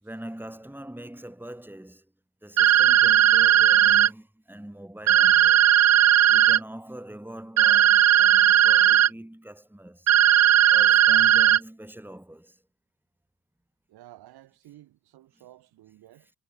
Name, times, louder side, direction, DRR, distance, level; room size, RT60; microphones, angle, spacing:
voice 1, 0.0-2.1 2.4-5.7 6.3-10.1 10.7-12.6, right 1 dB, 5° right, 3.6 m, -42 dB
sound 1, 2.6-4.1 5.1-6.6 7.6-9.1 10.1-11.6, right 12 dB, 45° right, 0.5 m, -17 dB
voice 2, 13.9-16.3, right 15 dB, 80° right, 2.9 m, -52 dB
supercardioid pair, 45°, 38 cm